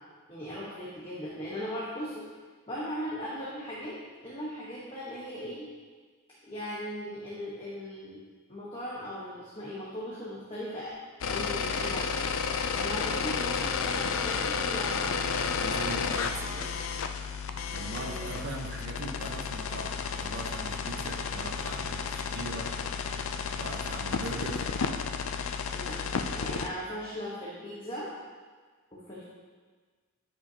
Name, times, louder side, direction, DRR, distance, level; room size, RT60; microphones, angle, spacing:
voice 1, 0.3-2.3 2.7-5.7 6.4-8.2 8.5-10.9 11.2-12.3 12.8-15.3 18.0-18.2 25.7-28.1 28.9-29.2, equal, 25° left, -8 dB, 1.2 m, -38 dB
sound 1, 11.2-26.7, left 5 dB, 65° left, 0.4 m, -32 dB
voice 2, 15.6-16.7 17.7-22.7 23.1-24.7, right 2 dB, 50° right, 1 dB, 1.0 m, -40 dB
13.0 x 5.6 x 2.8 m, 1.5 s
head